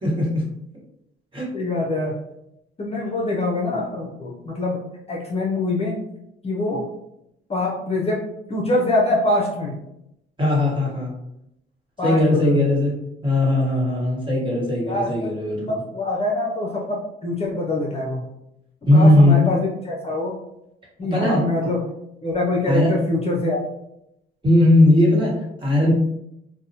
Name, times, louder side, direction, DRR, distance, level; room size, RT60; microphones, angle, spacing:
voice 1, 0.0-0.4 1.3-1.5 10.4-11.1 12.0-15.8 18.9-19.4 21.1-21.7 22.7-22.9 24.4-25.9, left 1 dB, 25° right, -6 dB, 1.3 m, -18 dB
voice 2, 1.5-2.2 2.8-4.8 5.1-6.0 6.4-6.8 7.5-8.2 8.5-9.7 12.0-12.7 14.9-15.3 15.7-18.3 18.9-20.4 21.0-21.8 22.2-23.7, left 2 dB, 30° left, -2 dB, 0.6 m, -24 dB
2.6 x 2.1 x 2.7 m, 0.81 s
cardioid pair, 90°, 20 cm